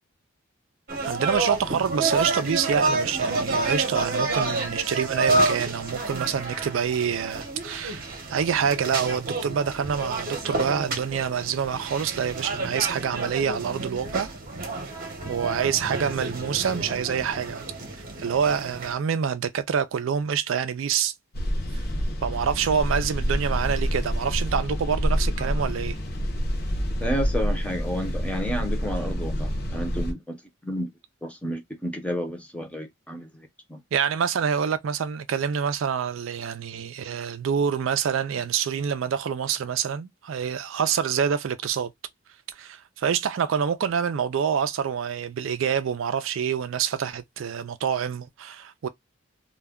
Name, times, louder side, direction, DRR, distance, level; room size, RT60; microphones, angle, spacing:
sound 1, 0.9-18.9, right 2 dB, 45° right, 0.8 m, -29 dB
voice 1, 1.0-14.3 15.3-17.6 18.2-21.1 22.2-26.0 33.9-41.9 42.6-48.9, right 7 dB, 65° right, 0.4 m, -26 dB
sound 2, 21.3-30.1, equal, 50° left, 0.7 m, -27 dB
voice 2, 27.0-30.4 30.6-30.9 31.2-33.8, equal, 5° left, 0.6 m, -31 dB
2.3 x 2.1 x 3.4 m
head